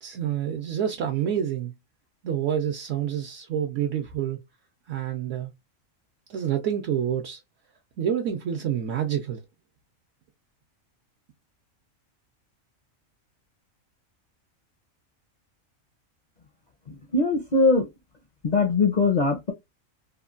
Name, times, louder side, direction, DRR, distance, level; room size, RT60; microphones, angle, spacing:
voice 1, 0.0-1.7 2.2-4.4 4.9-5.5 6.3-7.4 8.0-9.4, right 9 dB, 70° right, 0.9 m, -28 dB
voice 2, 16.9-17.9 18.4-19.5, left 3 dB, 50° left, 0.5 m, -21 dB
3.1 x 2.2 x 2.4 m
omnidirectional pair, 1.4 m